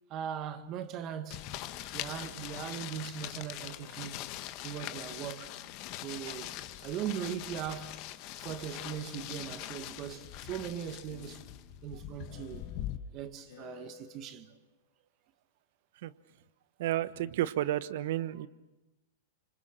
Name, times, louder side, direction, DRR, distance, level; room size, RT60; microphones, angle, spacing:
voice 1, 0.1-1.5 1.9-4.3 4.6-5.5 6.0-6.6 6.8-8.0 8.4-11.5 11.8-12.7 13.1-14.5, right 9 dB, 40° right, 1.8 m, -39 dB
Speech synthesizer, 1.3-4.4 4.8-5.8 6.1-7.2 7.4-8.4 8.7-9.6 9.9-10.7 11.0-14.6, left 8 dB, 65° left, 4.1 m, -58 dB
sound 1, 1.3-13.0, left 14 dB, 45° left, 1.3 m, -42 dB
voice 2, 16.8-18.5, right 13 dB, 65° right, 1.1 m, -31 dB
26.5 x 26.5 x 6.7 m
hypercardioid pair, 120°, 0 cm